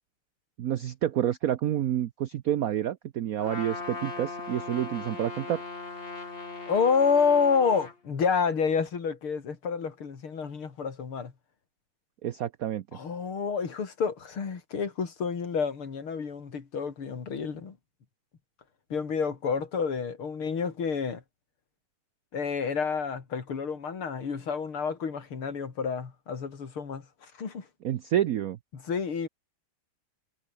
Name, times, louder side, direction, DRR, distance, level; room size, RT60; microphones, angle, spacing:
voice 1, 0.6-5.6 12.2-12.8 27.8-28.6, right 11 dB, 85° right, 0.7 m, -28 dB
Trumpet, 3.4-8.0, left 3 dB, 25° left, 2.3 m, -39 dB
voice 2, 6.7-11.3 12.9-17.8 18.9-21.2 22.3-27.7 28.7-29.3, left 6 dB, 75° left, 3.7 m, -29 dB
omnidirectional pair, 2.4 m